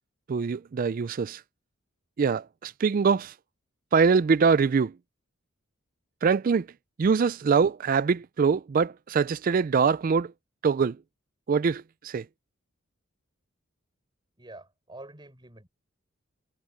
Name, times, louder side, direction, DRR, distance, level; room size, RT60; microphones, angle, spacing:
voice 1, 0.3-1.4 2.2-3.3 3.9-4.9 6.2-6.7 7.0-10.3 10.6-11.0 11.5-12.2, right 5 dB, 40° right, 0.4 m, -23 dB
voice 2, 14.4-15.7, right 2 dB, 20° right, 7.0 m, -47 dB
head